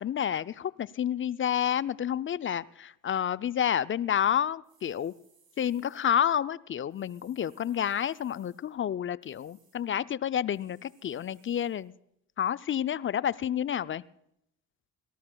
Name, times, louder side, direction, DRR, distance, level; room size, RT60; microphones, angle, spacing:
voice 1, 0.0-5.1 5.6-11.9 12.4-14.0, left 9 dB, 25° left, 18 dB, 0.4 m, -29 dB
sound 1, 4.6-6.2 6.9-8.8 9.2-9.9 10.5-11.9, right 5 dB, 45° right, 7.5 m, -67 dB
30.0 x 14.0 x 2.3 m, 0.77 s
hypercardioid pair, 50°, 49 cm